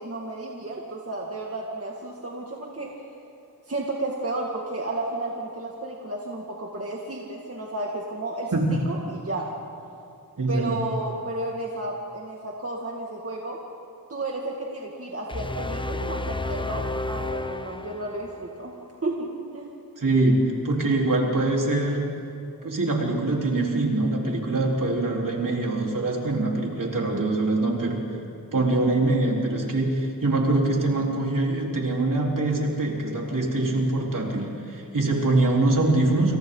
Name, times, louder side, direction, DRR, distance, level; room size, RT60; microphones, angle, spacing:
voice 1, 0.0-2.9 3.7-8.5 8.9-9.5 10.5-13.6 14.1-18.7 19.0-19.7, right 2 dB, 40° right, -2 dB, 2.2 m, -32 dB
voice 2, 10.4-10.7 20.0-20.4 20.6-22.0 22.6-28.0 28.5-36.4, right 2 dB, 65° right, -2 dB, 4.1 m, -23 dB
sound 1, 15.3-18.5, left 2 dB, 15° left, 0.7 m, -31 dB
28.5 x 28.0 x 4.0 m, 2.7 s
wide cardioid pair, 90°, 35 cm